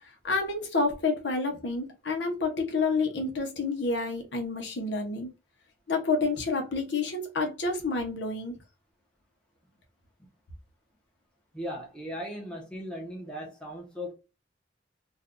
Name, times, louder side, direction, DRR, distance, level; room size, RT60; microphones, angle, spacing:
voice 1, 0.0-5.3 5.9-8.5, left 3 dB, 70° left, 0.8 m, -29 dB
voice 2, 11.5-14.1, equal, 5° left, 0.9 m, -37 dB
2.6 x 2.4 x 3.6 m
head